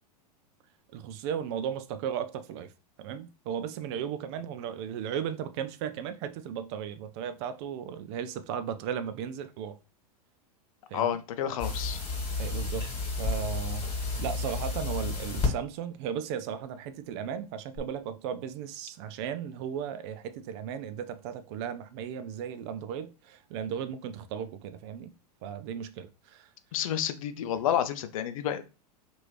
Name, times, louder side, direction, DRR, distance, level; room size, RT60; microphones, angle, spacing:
voice 1, 0.9-2.7 3.0-9.8 10.9-11.2 12.4-12.9 13.2-13.9 14.2-25.1 25.4-26.5, right 8 dB, 40° right, 0.4 m, -36 dB
voice 2, 10.9-12.0 26.7-28.6, left 10 dB, 55° left, 0.4 m, -30 dB
sound 1, 11.6-15.5 17.8-17.9, left 3 dB, 25° left, 1.5 m, -31 dB
2.9 x 2.6 x 3.2 m
figure-of-eight pair, 95°, 20 cm